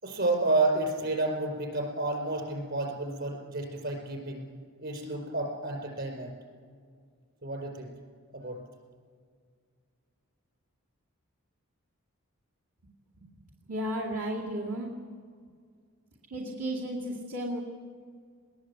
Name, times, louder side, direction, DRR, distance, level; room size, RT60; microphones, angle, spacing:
voice 1, 0.0-4.4 4.8-6.3 7.4-7.9 8.3-8.6, right 2 dB, 50° right, 3 dB, 4.7 m, -30 dB
voice 2, 13.7-14.9 16.3-17.6, right 1 dB, 75° right, -2 dB, 2.5 m, -33 dB
20.5 x 20.0 x 8.3 m, 2.1 s
head